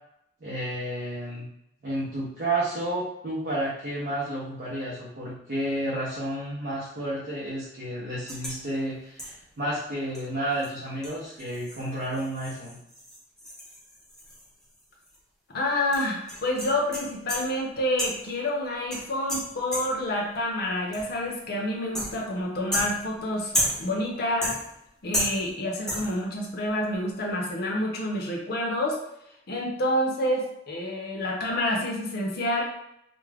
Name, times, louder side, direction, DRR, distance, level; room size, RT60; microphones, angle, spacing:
voice 1, 0.4-1.5 1.8-12.8, right 1 dB, 55° right, -7 dB, 0.6 m, -31 dB
sound 1, 8.3-8.6 9.2-9.5 10.1-10.2 10.6-10.7 11.0-14.8 15.1-15.2 15.9-17.6 18.0-18.4 18.9-20.1 20.9-21.3 21.9-22.4 22.7-24.0 24.4-24.9 25.1-25.6 25.9-26.3, equal, 5° left, 0.5 m, -33 dB
voice 2, 15.5-24.5 25.0-29.0 29.5-32.6, left 1 dB, 55° left, -1 dB, 0.5 m, -28 dB
2.3 x 2.0 x 3.3 m, 0.78 s
head